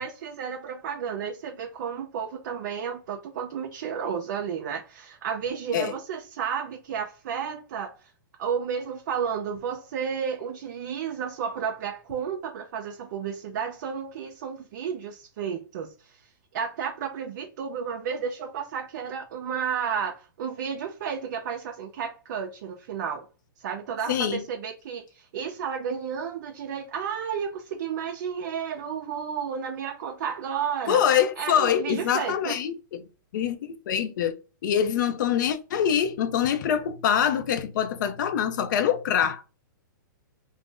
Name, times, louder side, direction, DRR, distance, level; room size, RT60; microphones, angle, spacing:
voice 1, 0.0-8.1 8.4-23.3 23.6-31.0 31.4-32.6, right 7 dB, 55° right, 0.5 m, -32 dB
voice 2, 24.1-24.4 30.9-33.0 33.3-33.6 33.9-34.3 34.6-39.5, left 9 dB, 60° left, 0.5 m, -24 dB
2.5 x 2.0 x 3.6 m
hypercardioid pair, 145°, 11 cm